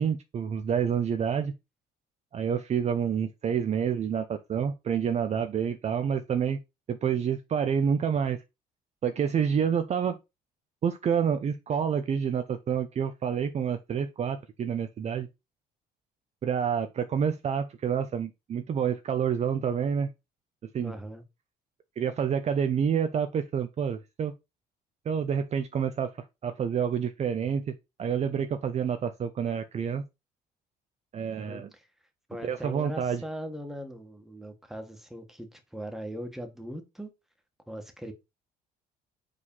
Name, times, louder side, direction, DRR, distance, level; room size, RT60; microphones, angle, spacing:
voice 1, 0.0-1.5 2.3-6.6 6.9-8.4 9.0-10.2 10.8-15.3 16.4-20.1 20.6-20.9 22.0-24.3 25.1-26.1 26.4-27.7 28.0-30.0 31.1-31.7 32.4-33.2, right 7 dB, 40° right, 0.7 m, -28 dB
voice 2, 20.8-21.2 31.4-31.9 32.3-37.1 37.7-38.1, equal, ahead, 1.5 m, -40 dB
4.9 x 4.1 x 5.5 m
cardioid pair, 110°, 17 cm